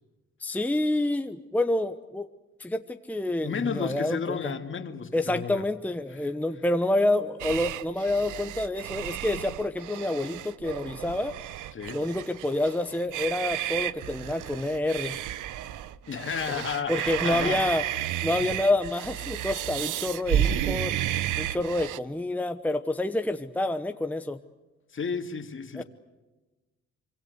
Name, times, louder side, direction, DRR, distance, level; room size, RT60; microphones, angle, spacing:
voice 1, 0.4-2.3 2.6-4.5 5.1-11.4 11.9-15.2 16.5-16.6 16.9-17.8 18.2-21.0 21.4-24.4 25.7-25.8, left 1 dB, 5° left, 1.0 m, -28 dB
voice 2, 3.4-5.6 11.7-12.0 16.1-17.6 24.9-25.8, left 6 dB, 40° left, 2.3 m, -32 dB
sound 1, 7.4-22.0, right 12 dB, 85° right, 0.9 m, -32 dB
25.5 x 24.5 x 8.1 m
cardioid pair, 90°, 30 cm